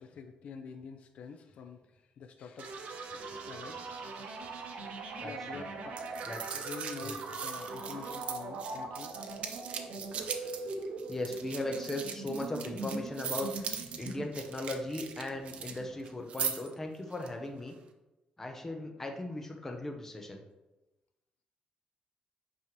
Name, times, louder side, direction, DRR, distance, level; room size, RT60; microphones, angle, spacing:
voice 1, 0.0-2.7 3.1-3.8 5.2-6.0 6.5-9.1, left 5 dB, 55° left, 6 dB, 0.5 m, -47 dB
sound 1, 2.6-16.2, right 3 dB, 70° right, 1.0 m, -41 dB
voice 2, 5.2-5.6 6.3-6.5 7.0-7.2 11.1-17.7 18.4-20.4, left 1 dB, 15° left, 3 dB, 0.7 m, -38 dB
sound 2, 6.0-15.8 16.1-16.7 17.1-17.3, right 7 dB, 50° right, 0.6 m, -40 dB
8.7 x 5.4 x 3.1 m, 1.0 s
cardioid pair, 180°, 3 cm